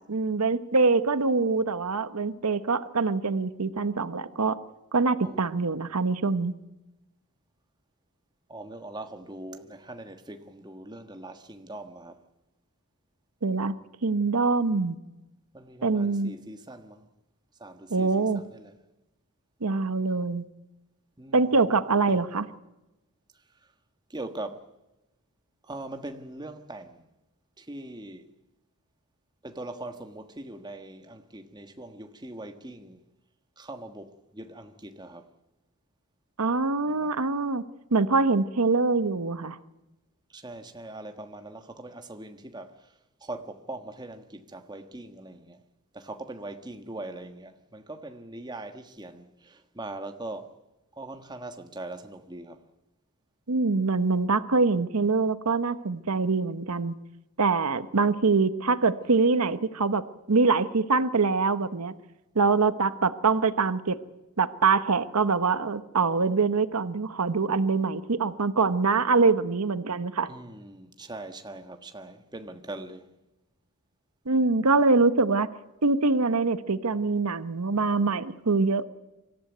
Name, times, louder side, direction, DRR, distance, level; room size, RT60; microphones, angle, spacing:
voice 1, 0.1-4.6 4.9-6.5 13.4-13.7 14.0-15.0 15.8-16.3 17.9-18.4 19.6-20.5 21.3-22.4 36.4-37.6 37.9-39.6 53.5-56.9 57.4-61.9 62.3-64.0 64.4-70.3 74.3-75.5 75.8-78.9, right 4 dB, 85° right, 1.0 m, -24 dB
voice 2, 5.2-5.7 8.5-12.2 15.5-17.1 17.6-18.7 21.2-21.6 22.1-22.2 23.3-23.7 24.1-24.7 25.6-27.1 27.6-28.3 29.4-33.0 33.6-35.3 36.9-37.3 40.3-45.6 45.9-50.6 50.9-52.6 70.3-73.1, right 2 dB, 20° right, 1.4 m, -41 dB
25.0 x 14.0 x 9.3 m
head